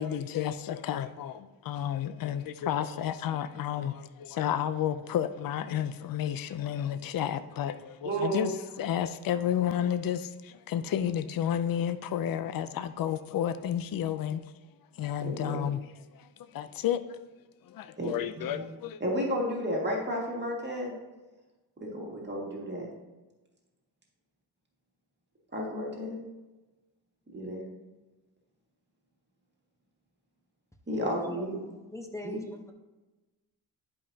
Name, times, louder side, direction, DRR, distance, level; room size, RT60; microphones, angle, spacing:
voice 1, 0.0-8.5 8.8-14.4 15.0-15.8 16.1-17.0 17.7-19.0, left 10 dB, 55° left, 0.5 m, -31 dB
voice 2, 8.0-8.5 15.2-15.7 18.0-18.6 19.0-20.9 21.8-22.9 25.5-26.2 27.3-27.6 30.9-31.6 32.2-32.4, equal, 25° right, 2.0 m, -32 dB
voice 3, 31.0-31.5 31.9-32.7, left 2 dB, 5° left, 0.9 m, -42 dB
11.0 x 5.3 x 2.8 m
cardioid pair, 90°, 42 cm